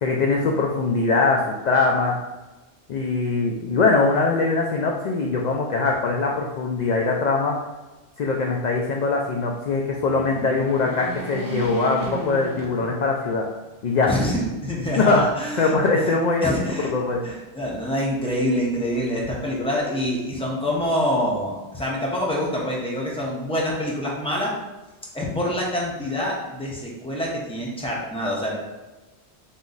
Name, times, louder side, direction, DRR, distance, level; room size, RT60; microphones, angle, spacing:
voice 1, 0.0-2.2 2.9-7.6 8.2-13.5 13.8-14.1 15.0-15.3 15.6-16.5 16.8-17.2, left 3 dB, 60° left, 0 dB, 0.4 m, -22 dB
sound 1, 9.9-13.4 13.9-14.0 15.1-15.8, right 3 dB, 25° right, 0.4 m, -35 dB
voice 2, 14.1-16.9 17.2-24.5 25.1-28.6, equal, 5° left, -4 dB, 0.8 m, -26 dB
4.0 x 3.0 x 3.9 m, 1.1 s
omnidirectional pair, 1.2 m